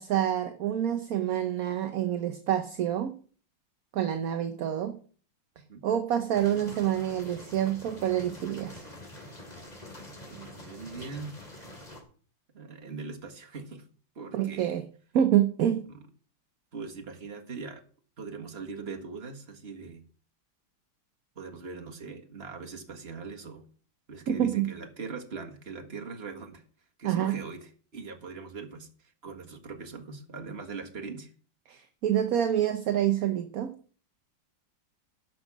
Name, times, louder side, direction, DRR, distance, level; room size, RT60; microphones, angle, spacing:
voice 1, 0.0-3.2 3.9-5.0 5.8-8.8 14.3-14.8 15.1-15.9 24.3-24.7 27.0-27.4 31.7-33.7, right 10 dB, 55° right, 8 dB, 1.2 m, -27 dB
sound 1, 6.3-12.0, left 1 dB, 20° left, 2.7 m, -46 dB
voice 2, 10.3-11.3 12.5-13.8 14.2-14.8 15.9-16.0 16.7-17.8 18.2-20.0 21.4-23.6 24.1-26.6 27.0-28.9 29.2-31.3, right 4 dB, 35° right, 3 dB, 1.9 m, -41 dB
11.5 x 6.2 x 7.3 m, 0.42 s
omnidirectional pair, 2.0 m